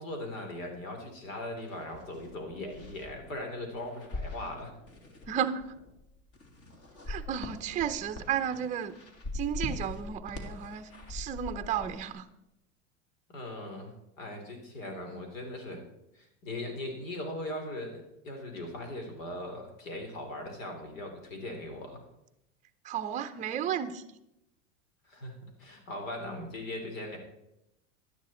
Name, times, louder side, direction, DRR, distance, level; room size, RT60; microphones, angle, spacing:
voice 1, 0.0-4.7 7.1-7.2 13.3-15.8 16.1-22.0 25.0-27.2, left 1 dB, 80° left, 4 dB, 3.7 m, -39 dB
sound 1, 1.6-12.1, left 2 dB, 35° left, 2.2 m, -43 dB
voice 2, 5.3-5.6 7.1-8.9 9.3-12.2 22.8-24.0, right 9 dB, 20° right, 10 dB, 0.6 m, -33 dB
11.5 x 10.0 x 4.3 m, 0.85 s
supercardioid pair, 115°, 39 cm